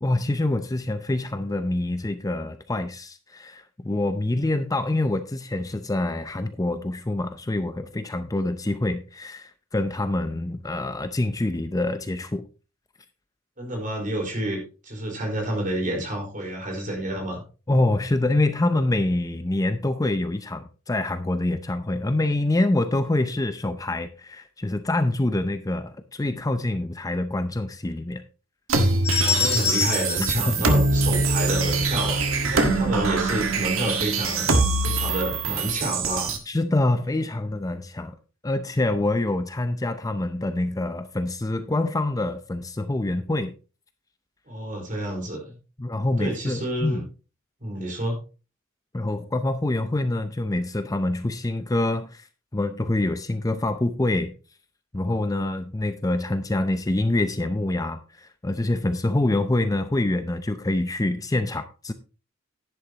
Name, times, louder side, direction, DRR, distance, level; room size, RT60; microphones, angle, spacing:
voice 1, 0.0-12.4 17.7-28.2 30.5-30.6 32.6-32.8 36.5-38.2 38.4-43.5 45.8-47.0 48.9-52.3 52.5-54.3 54.9-61.9, left 2 dB, 15° left, 9 dB, 0.6 m, -26 dB
voice 2, 13.6-17.4 29.2-36.4 44.5-45.5 46.2-47.0 47.6-48.2, right 1 dB, 40° right, 1 dB, 4.5 m, -29 dB
sound 1, 28.7-36.4, right 3 dB, 90° right, 1.6 m, -23 dB
sound 2, 29.0-31.5, left 6 dB, 35° left, 4.8 m, -27 dB
11.0 x 10.5 x 2.9 m, 0.34 s
head